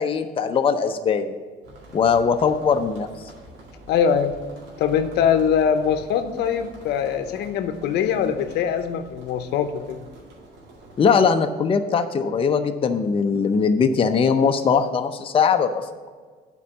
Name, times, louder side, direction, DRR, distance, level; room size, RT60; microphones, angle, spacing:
voice 1, 0.0-1.3 1.9-3.1 11.0-16.1, left 6 dB, 30° left, 6 dB, 0.6 m, -20 dB
sound 1, 1.6-11.1, right 1 dB, 85° right, 2.0 m, -46 dB
voice 2, 3.9-4.4 4.8-10.0, left 7 dB, 80° left, 8 dB, 0.7 m, -22 dB
8.3 x 4.5 x 7.0 m, 1.5 s
cardioid pair, 110°, 17 cm